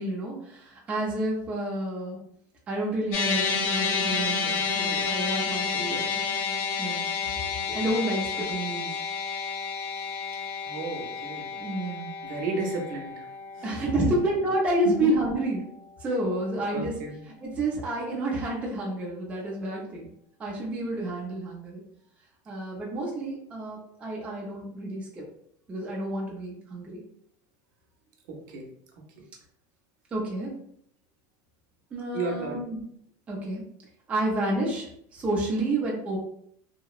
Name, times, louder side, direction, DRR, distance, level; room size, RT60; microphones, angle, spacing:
voice 1, 0.0-2.2 2.7-5.9 6.8-7.1 7.4-8.9 11.5-12.1 13.6-15.7 16.0-16.9 17.4-20.1 20.4-21.8 22.5-25.2 25.7-27.0 30.1-30.5 31.9-32.8 33.3-33.6 34.1-36.2, right 1 dB, 10° right, -4 dB, 0.4 m, -29 dB
sound 1, 3.1-15.6, left 5 dB, 60° left, 0.5 m, -31 dB
voice 2, 10.6-11.5 12.2-13.2 13.6-13.8 15.0-15.1 16.7-17.2 28.3-28.7 32.1-32.6, right 3 dB, 70° right, 1 dB, 0.6 m, -33 dB
2.7 x 2.0 x 2.3 m, 0.68 s
supercardioid pair, 170°, 11 cm